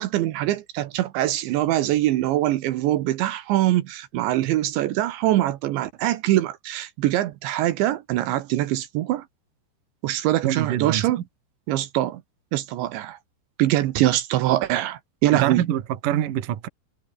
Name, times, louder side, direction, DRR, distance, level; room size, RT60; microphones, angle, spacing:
voice 1, 0.0-9.2 10.0-11.2 11.7-12.2 12.5-13.2 13.6-15.6, right 14 dB, 75° right, 3.4 m, -23 dB
voice 2, 10.4-11.0 15.3-16.7, right 11 dB, 55° right, 2.9 m, -25 dB
omnidirectional pair, 5.4 m